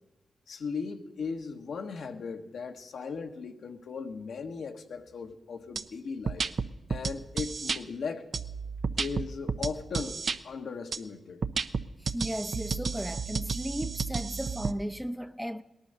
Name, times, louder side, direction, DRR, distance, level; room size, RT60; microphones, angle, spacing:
voice 1, 0.5-6.4 6.9-8.3 9.0-11.4, left 5 dB, 75° left, 1.2 m, -37 dB
sound 1, 5.8-5.9 6.3-7.8 8.3-10.4 10.9-11.0 11.4-14.7, right 5 dB, 60° right, 0.6 m, -32 dB
voice 2, 12.0-15.6, equal, ahead, 0.7 m, -35 dB
18.0 x 11.0 x 6.6 m
cardioid pair, 55°, 0 cm